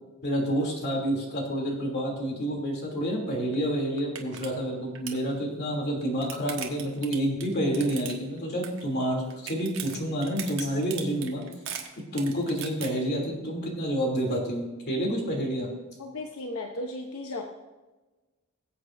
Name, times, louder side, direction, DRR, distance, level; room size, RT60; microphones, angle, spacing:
voice 1, 0.2-11.4 12.1-15.7, equal, 50° left, -1 dB, 2.9 m, -29 dB
sound 1, 3.5-3.6 4.0-4.5 4.7-5.2 5.8-8.4 8.6-9.0 9.3-12.9, right 8 dB, 65° right, 1.4 m, -38 dB
voice 2, 16.0-17.4, left 2 dB, 85° left, 2 dB, 0.9 m, -35 dB
21.0 x 8.1 x 2.6 m, 1.2 s
head